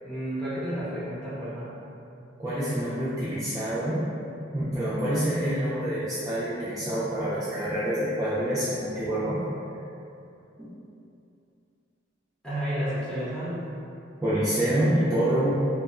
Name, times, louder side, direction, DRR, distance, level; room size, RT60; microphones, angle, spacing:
voice 1, 0.0-1.7 12.4-13.6, equal, 5° left, -12 dB, 0.8 m, -31 dB
voice 2, 2.4-4.0 4.5-9.4 10.6-10.7 14.2-15.5, right 1 dB, 20° right, -12 dB, 0.3 m, -27 dB
2.7 x 2.1 x 2.4 m, 2.7 s
head